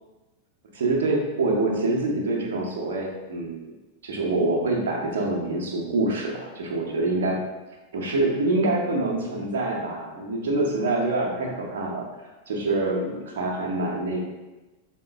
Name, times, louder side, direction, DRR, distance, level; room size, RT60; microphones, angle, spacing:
voice 1, 0.7-3.6 4.0-7.4 7.9-12.0 12.5-14.2, right 2 dB, 60° right, 0 dB, 0.7 m, -25 dB
5.2 x 2.8 x 2.3 m, 1.1 s
figure-of-eight pair, 90°, 0 cm